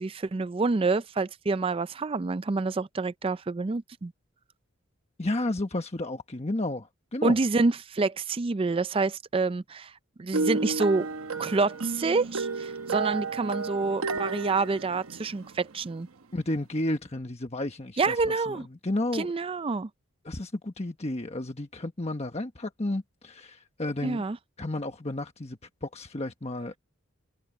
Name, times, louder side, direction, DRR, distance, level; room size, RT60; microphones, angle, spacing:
voice 1, 0.0-4.1 7.2-9.9 10.2-11.1 11.4-16.1 18.0-18.7 19.1-19.9 24.0-24.4, right 3 dB, 25° right, 0.4 m, -27 dB
voice 2, 5.2-7.4 16.3-19.3 20.2-24.2 24.6-26.8, left 1 dB, 30° left, 1.2 m, -32 dB
sound 1, 10.3-15.8, right 3 dB, 80° right, 1.0 m, -32 dB
open air
head